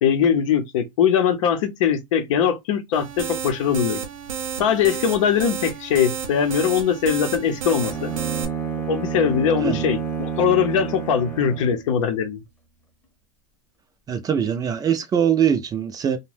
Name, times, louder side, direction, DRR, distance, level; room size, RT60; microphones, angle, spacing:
voice 1, 0.0-4.0 4.6-8.1 8.9-12.4, left 8 dB, 70° left, 0.6 m, -21 dB
sound 1, 2.9-8.5, right 7 dB, 85° right, 0.7 m, -31 dB
Bowed string instrument, 7.8-11.9, right 6 dB, 10° left, 0.8 m, -29 dB
voice 2, 14.1-16.2, right 8 dB, 20° right, 0.4 m, -22 dB
2.5 x 2.1 x 3.2 m
hypercardioid pair, 115°, 17 cm